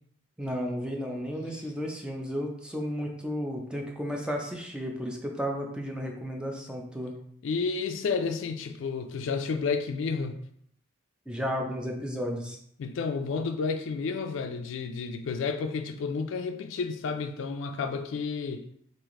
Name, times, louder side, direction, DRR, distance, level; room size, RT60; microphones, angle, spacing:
voice 1, 0.4-7.1 11.3-12.6, equal, 5° right, 0.4 m, -33 dB
voice 2, 7.4-10.4 12.8-18.6, left 5 dB, 70° left, 0.3 m, -31 dB
3.2 x 2.5 x 3.6 m
head